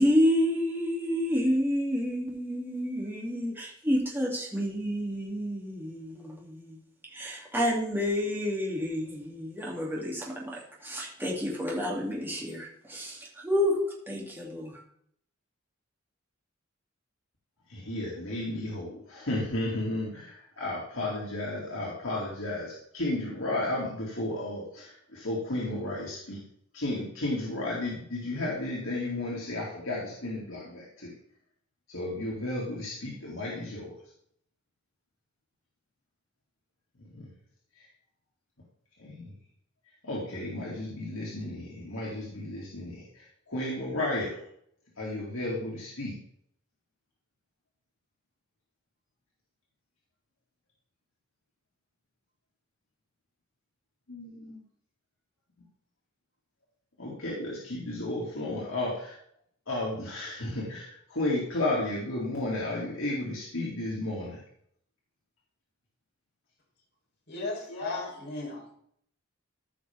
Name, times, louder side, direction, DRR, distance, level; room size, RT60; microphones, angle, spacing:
voice 1, 0.0-6.8 7.1-13.8 14.1-14.8, equal, 10° right, -3 dB, 2.7 m, -29 dB
voice 2, 17.7-26.4 26.7-31.1 31.9-33.9 37.0-37.3 37.8-37.9 39.0-39.3 40.0-44.4 45.0-46.2 54.1-54.6 57.0-59.2 59.7-64.4 67.7-68.0, left 1 dB, 80° left, -5 dB, 2.4 m, -33 dB
voice 3, 67.3-68.7, left 2 dB, 55° left, -3 dB, 4.0 m, -36 dB
15.0 x 5.8 x 3.6 m, 0.66 s
head